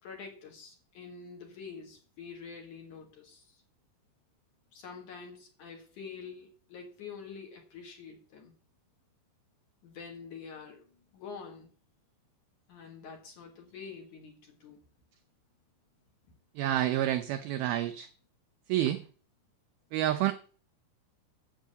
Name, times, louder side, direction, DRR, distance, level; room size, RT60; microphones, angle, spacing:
voice 1, 0.0-3.6 4.7-8.5 9.8-11.7 12.7-14.8, left 5 dB, 55° left, 3 dB, 2.7 m, -46 dB
voice 2, 16.6-18.1 18.7-19.0 19.9-20.3, right 13 dB, 85° right, 9 dB, 2.1 m, -28 dB
7.7 x 7.4 x 8.0 m, 0.42 s
omnidirectional pair, 5.1 m